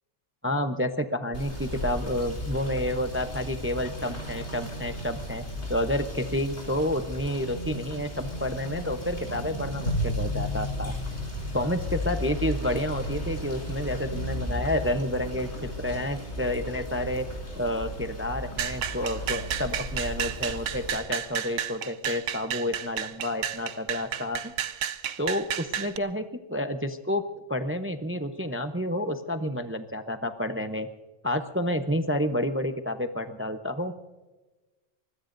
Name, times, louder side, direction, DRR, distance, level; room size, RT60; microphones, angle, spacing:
voice 1, 0.4-10.9 11.5-17.2 17.6-24.5 25.2-27.2 27.5-30.9 31.2-33.9, left 1 dB, 15° right, 8 dB, 0.6 m, -30 dB
Rain / Motor vehicle (road), 1.3-20.9, left 1 dB, 60° left, 4.9 m, -34 dB
sound 1, 18.6-26.0, right 9 dB, 85° right, 1.1 m, -32 dB
25.0 x 21.0 x 2.6 m, 1.2 s
omnidirectional pair, 1.3 m